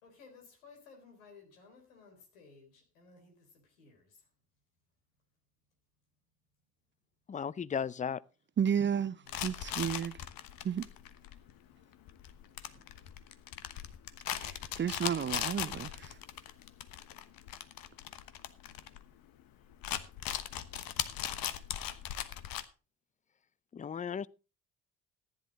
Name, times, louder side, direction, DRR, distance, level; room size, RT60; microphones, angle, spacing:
voice 1, 0.0-4.2 9.2-9.5, left 4 dB, 80° left, 4.1 m, -58 dB
voice 2, 7.3-8.2 23.7-24.3, left 7 dB, 20° left, 0.5 m, -35 dB
voice 3, 8.6-10.2 10.6-10.9 14.3-16.2, right 8 dB, 30° right, 0.6 m, -32 dB
sound 1, 9.3-19.4 19.7-22.7, left 11 dB, 60° left, 1.2 m, -39 dB
14.5 x 10.5 x 4.0 m
figure-of-eight pair, 45°, 40 cm